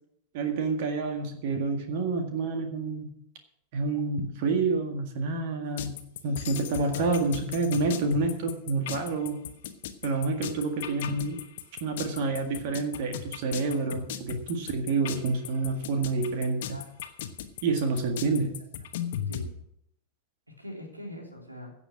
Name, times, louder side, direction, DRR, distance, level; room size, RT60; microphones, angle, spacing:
voice 1, 0.3-3.1 3.7-5.9 6.2-9.4 10.0-11.4 11.8-16.8 17.6-18.5, right 3 dB, 50° right, 5 dB, 1.8 m, -28 dB
sound 1, 5.8-19.5, left 9 dB, 55° left, 1.1 m, -37 dB
voice 2, 6.7-7.1 10.5-10.6 16.6-16.8 19.3-19.5 20.6-21.7, left 1 dB, 85° right, 1 dB, 3.3 m, -42 dB
16.0 x 7.0 x 6.1 m, 0.75 s
figure-of-eight pair, 90°, 0 cm